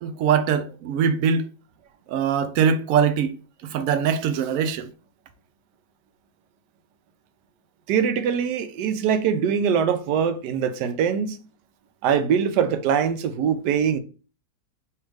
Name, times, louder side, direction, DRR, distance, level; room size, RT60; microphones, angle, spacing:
voice 1, 0.0-1.5 2.1-3.4 3.6-4.9, right 7 dB, 65° right, 0.9 m, -22 dB
voice 2, 7.9-11.4 12.0-14.0, right 7 dB, 90° right, 1.2 m, -22 dB
3.5 x 2.8 x 4.6 m
omnidirectional pair, 1.7 m